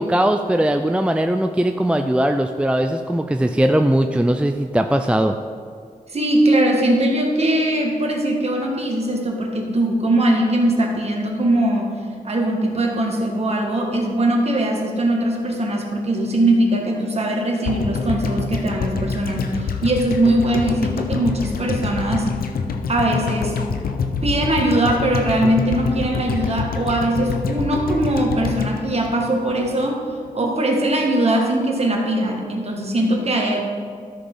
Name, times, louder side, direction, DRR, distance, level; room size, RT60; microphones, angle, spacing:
voice 1, 0.0-5.4, right 1 dB, 5° right, 6 dB, 0.4 m, -19 dB
voice 2, 6.1-12.0 12.2-22.3 22.9-23.6 24.2-30.0 30.3-33.6, right 1 dB, 45° right, 0 dB, 1.8 m, -20 dB
sound 1, 17.6-29.9 30.1-30.2, left 5 dB, 85° left, 0.7 m, -26 dB
13.0 x 6.1 x 3.9 m, 2.1 s
cardioid pair, 75°, 15 cm